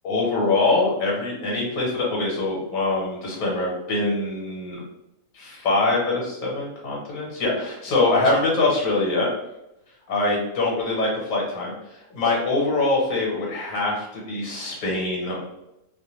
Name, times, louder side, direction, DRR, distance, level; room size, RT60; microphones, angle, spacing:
voice 1, 0.0-4.8 5.3-9.3 10.1-11.7 12.1-15.5, left 2 dB, 80° left, -3 dB, 1.2 m, -23 dB
2.5 x 2.2 x 2.8 m, 0.90 s
omnidirectional pair, 1.4 m